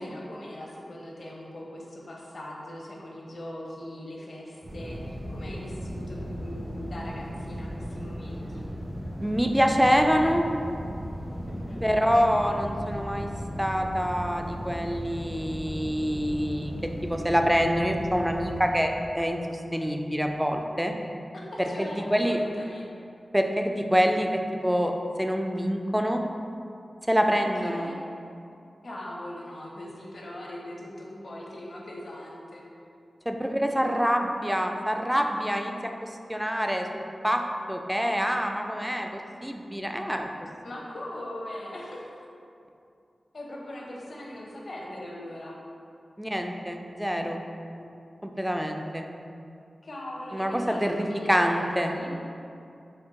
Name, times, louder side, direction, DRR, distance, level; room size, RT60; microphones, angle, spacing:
voice 1, 0.0-8.7 11.4-11.8 21.3-22.9 27.6-28.0 28.8-32.6 40.6-42.2 43.3-45.5 49.8-52.1, left 1 dB, 65° left, -3 dB, 0.6 m, -40 dB
sound 1, 4.6-18.6, equal, 60° right, 1.1 m, -36 dB
voice 2, 9.2-10.5 11.8-13.3 13.6-16.7 17.0-20.9 21.8-22.4 23.3-24.9 25.2-26.2 27.1-27.9 33.3-35.7 36.0-37.4 37.7-40.3 46.2-47.4 48.2-49.0 50.3-51.9, equal, 5° right, 3 dB, 0.3 m, -26 dB
4.4 x 2.2 x 3.6 m, 2.6 s
cardioid pair, 60°, 0 cm